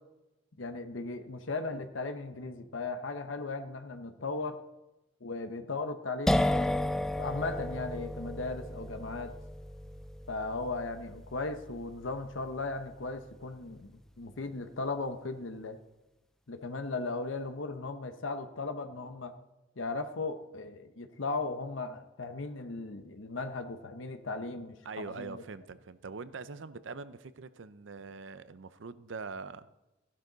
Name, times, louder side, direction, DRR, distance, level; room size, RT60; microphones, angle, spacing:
voice 1, 0.6-4.6 5.2-9.3 10.3-15.8 16.5-19.3 19.8-25.4, left 3 dB, 85° left, 8 dB, 0.9 m, -37 dB
sound 1, 6.3-13.8, left 1 dB, 5° left, 0.3 m, -34 dB
voice 2, 24.8-29.7, right 4 dB, 70° right, 14 dB, 0.6 m, -43 dB
14.5 x 11.5 x 4.0 m, 0.98 s
head